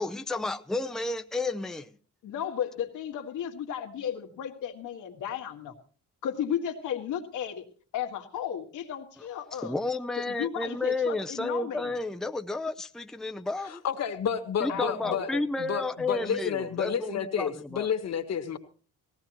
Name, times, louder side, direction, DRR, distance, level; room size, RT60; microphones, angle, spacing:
voice 1, 0.0-1.9 9.6-13.8 14.6-17.9, left 2 dB, ahead, 8 dB, 0.6 m, -31 dB
voice 2, 2.2-5.7 6.2-7.6 7.9-9.7 10.3-11.9 14.7-15.4, left 9 dB, 85° left, 4 dB, 1.9 m, -34 dB
voice 3, 13.6-15.3 15.6-18.6, left 7 dB, 60° left, 8 dB, 1.6 m, -30 dB
18.5 x 16.5 x 3.0 m, 0.40 s
cardioid pair, 90°, 30 cm